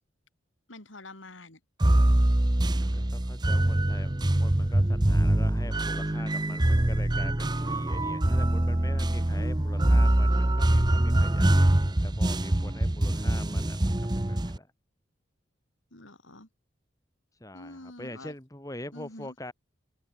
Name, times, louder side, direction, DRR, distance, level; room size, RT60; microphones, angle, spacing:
voice 1, 0.7-1.6 15.9-16.5 17.5-18.3 18.9-19.3, left 2 dB, 80° left, 4.8 m, -46 dB
sound 1, 1.8-14.6, right 1 dB, 20° right, 0.9 m, -24 dB
voice 2, 2.8-14.7 17.4-19.5, left 1 dB, 15° left, 1.9 m, -44 dB
open air
head